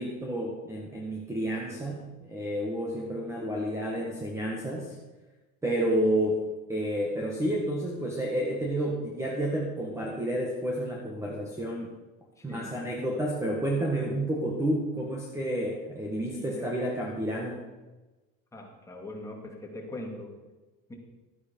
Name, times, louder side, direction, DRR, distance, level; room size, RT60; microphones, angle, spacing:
voice 1, 0.0-5.0 5.6-6.4 6.7-11.9 12.4-17.6, right 1 dB, 10° right, -2 dB, 1.6 m, -30 dB
voice 2, 12.4-12.8 16.2-16.7 18.5-20.3 20.9-21.0, left 1 dB, 10° left, -1 dB, 2.4 m, -41 dB
13.0 x 9.6 x 5.5 m, 1.2 s
cardioid pair, 155°, 31 cm